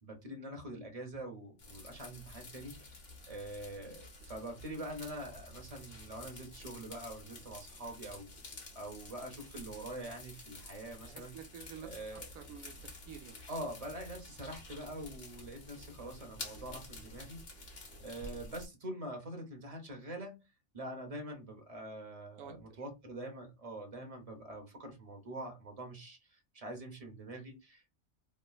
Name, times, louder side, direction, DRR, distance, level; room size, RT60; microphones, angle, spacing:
voice 1, 0.0-2.8 3.3-8.3 8.7-11.3 11.8-12.3 13.5-17.7 18.0-20.4 20.7-28.0, right 1 dB, 35° right, 0.7 m, -45 dB
sound 1, 1.6-18.7, left 1 dB, 50° left, 1.2 m, -50 dB
voice 2, 11.1-13.4 22.4-22.8, right 8 dB, 80° right, 1.0 m, -50 dB
3.2 x 2.9 x 2.3 m
omnidirectional pair, 1.4 m